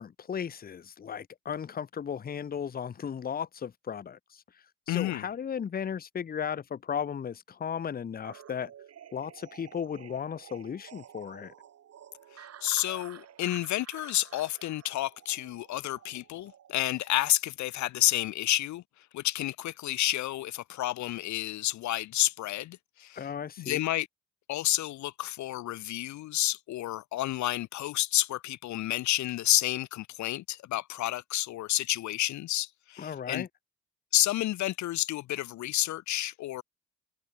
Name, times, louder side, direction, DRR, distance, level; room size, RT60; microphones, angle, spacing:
voice 1, 0.0-4.4 4.9-8.7 9.1-11.5 23.2-23.8 33.0-33.5, left 7 dB, 30° left, 0.7 m, -35 dB
voice 2, 4.9-5.3 12.3-23.3 23.6-24.1 24.5-33.5 34.1-36.6, left 14 dB, 70° left, 0.6 m, -30 dB
sound 1, 8.2-17.3, right 10 dB, 55° right, 1.5 m, -51 dB
cardioid pair, 90°, 30 cm